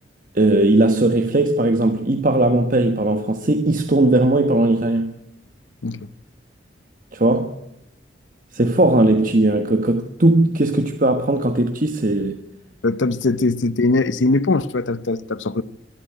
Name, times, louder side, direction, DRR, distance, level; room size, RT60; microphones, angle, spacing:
voice 1, 0.3-5.2 7.1-7.6 8.5-12.4, right 2 dB, 45° right, 1.3 m, -18 dB
voice 2, 12.8-15.6, left 3 dB, 85° left, 0.7 m, -21 dB
23.5 x 12.5 x 9.2 m
head